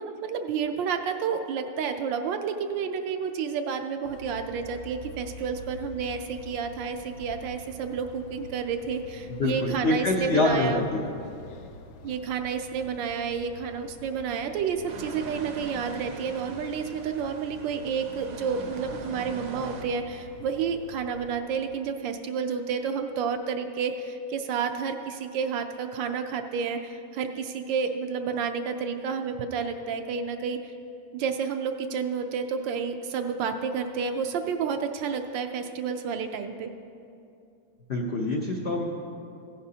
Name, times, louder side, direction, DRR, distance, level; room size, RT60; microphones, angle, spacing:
voice 1, 0.0-10.8 12.0-30.6 31.1-36.7, right 6 dB, 75° right, 6 dB, 1.2 m, -30 dB
sound 1, 4.0-21.4, left 3 dB, 85° left, 1.5 m, -47 dB
voice 2, 9.3-11.1 37.9-38.8, left 2 dB, 70° left, -1 dB, 0.6 m, -25 dB
sound 2, 14.9-19.8, right 3 dB, 60° right, 1.0 m, -42 dB
16.0 x 10.0 x 2.8 m, 2.6 s
omnidirectional pair, 2.2 m